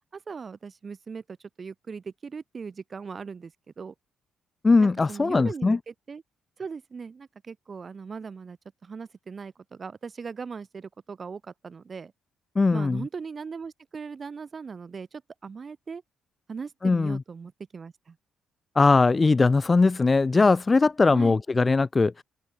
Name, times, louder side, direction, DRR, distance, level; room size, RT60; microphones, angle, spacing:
voice 1, 0.1-3.9 4.8-6.2 6.6-12.1 12.7-16.0 16.5-18.2 21.1-21.4, right 5 dB, 40° right, 7.0 m, -39 dB
voice 2, 4.6-5.8 12.5-13.0 16.8-17.2 18.7-22.2, left 3 dB, 25° left, 1.1 m, -20 dB
cardioid pair, 90°, 0 cm